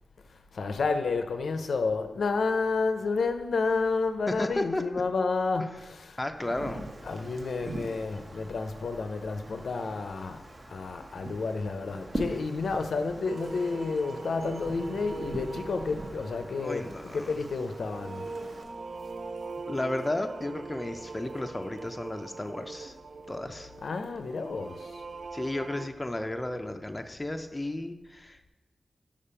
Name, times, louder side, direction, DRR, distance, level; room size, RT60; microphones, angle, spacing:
voice 1, 0.3-6.5 7.0-18.3 23.8-25.0, left 4 dB, 80° left, 0.5 m, -30 dB
voice 2, 4.3-4.8 6.2-6.9 16.6-17.4 19.7-23.0 23.3-23.7 25.3-28.5, left 1 dB, 15° left, 0.4 m, -33 dB
Wind, 6.3-18.6, right 1 dB, 40° right, 0.7 m, -42 dB
sound 1, 13.3-25.9, right 3 dB, 65° right, 0.4 m, -42 dB
5.1 x 5.1 x 5.5 m
wide cardioid pair, 135°, 0 cm